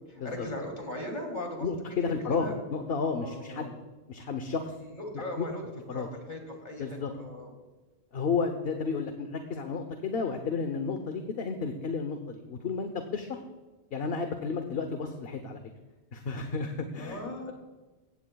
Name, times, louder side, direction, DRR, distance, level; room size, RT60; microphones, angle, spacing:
voice 1, 0.1-2.6 3.2-3.7 4.7-5.6 5.9-7.5 14.3-14.4 17.0-17.5, left 1 dB, 40° left, 1 dB, 2.9 m, -39 dB
voice 2, 1.6-3.7 4.1-4.6 5.4-5.5 5.9-6.1 6.8-7.1 8.1-13.4 13.9-15.6 16.1-17.2, left 5 dB, 60° left, 6 dB, 1.0 m, -32 dB
17.0 x 15.5 x 2.3 m, 1.2 s
omnidirectional pair, 1.2 m